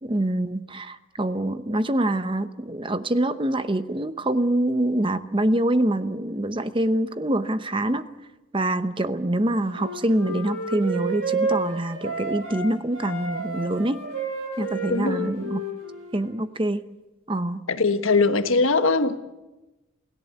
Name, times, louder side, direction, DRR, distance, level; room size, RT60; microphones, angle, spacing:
voice 1, 0.0-8.1 8.5-14.0 14.6-15.6 16.1-16.8 17.3-17.6, right 1 dB, 25° right, 11 dB, 0.8 m, -25 dB
Wind instrument woodwind instrument, 9.7-12.6 12.9-16.3, right 3 dB, 70° right, 7.0 m, -30 dB
voice 2, 14.9-15.3 17.7-19.2, left 3 dB, 75° left, 9 dB, 1.4 m, -21 dB
28.5 x 17.5 x 8.2 m, 1.1 s
head